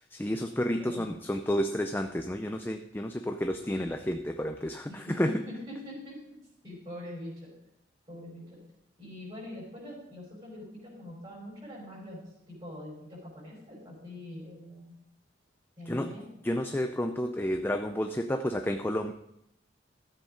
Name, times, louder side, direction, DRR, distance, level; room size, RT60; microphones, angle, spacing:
voice 1, 0.1-5.3 15.9-16.1 16.4-19.1, equal, 10° left, 5 dB, 0.5 m, -31 dB
voice 2, 0.8-1.1 4.9-6.4 6.6-7.5 8.1-8.6 9.0-12.2 12.5-14.9 15.8-16.2, left 1 dB, 30° right, -8 dB, 5.1 m, -43 dB
13.0 x 7.9 x 5.1 m, 0.80 s
head